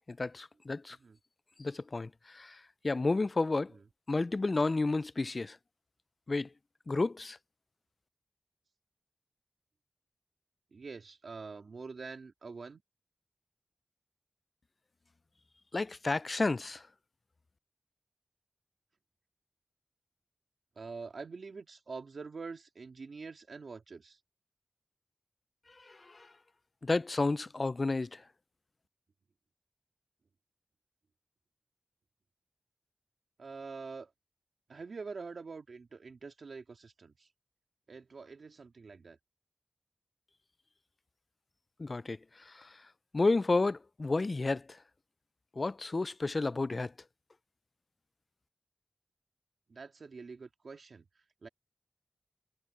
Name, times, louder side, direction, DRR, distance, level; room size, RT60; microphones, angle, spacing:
voice 1, 0.1-1.0 1.6-3.7 4.1-5.6 6.3-6.5 6.9-7.4 15.7-16.8 25.8-26.3 26.8-28.2 41.8-42.2 42.5-42.7 43.1-44.8 45.6-46.9, left 3 dB, 50° left, 0.3 m, -31 dB
voice 2, 10.7-12.8 20.7-24.2 33.4-34.1 34.7-37.3 37.9-39.2 49.7-51.0 51.4-51.5, right 4 dB, 90° right, 3.3 m, -45 dB
wide cardioid pair, 75°, 0 cm